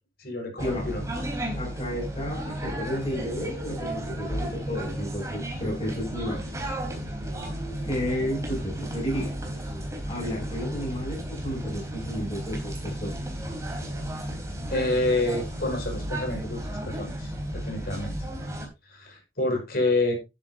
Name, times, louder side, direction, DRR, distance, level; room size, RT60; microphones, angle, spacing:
voice 1, 0.2-1.0 14.7-18.1 18.9-20.1, left 2 dB, 55° left, 6.0 m, -28 dB
sound 1, 0.6-18.7, right 1 dB, 15° right, 4.1 m, -33 dB
voice 2, 1.6-6.5 6.9-7.0 7.8-9.4 10.1-13.2, left 1 dB, 30° left, 6.3 m, -32 dB
11.5 x 10.5 x 2.8 m
head